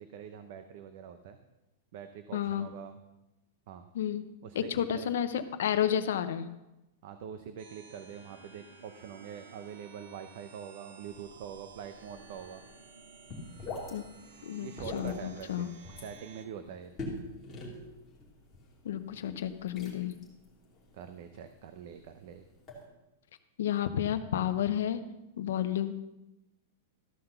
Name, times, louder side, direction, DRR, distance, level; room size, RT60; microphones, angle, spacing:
voice 1, 0.0-1.4 1.9-3.0 3.7-3.9 4.4-5.1 7.0-12.6 14.6-15.7 16.0-16.9 20.9-22.4, right 8 dB, 45° right, 8 dB, 0.7 m, -44 dB
voice 2, 2.3-2.7 3.9-4.2 4.5-6.5 13.9-14.0 14.5-15.7 18.8-20.2 23.6-25.0 25.4-25.9, left 10 dB, 70° left, 10 dB, 0.7 m, -31 dB
sound 1, 7.6-16.4, right 5 dB, 65° right, 1.8 m, -54 dB
sound 2, 11.0-22.9, left 2 dB, 10° left, 2.5 m, -46 dB
13.5 x 5.9 x 6.8 m, 0.97 s
supercardioid pair, 175°, 0 cm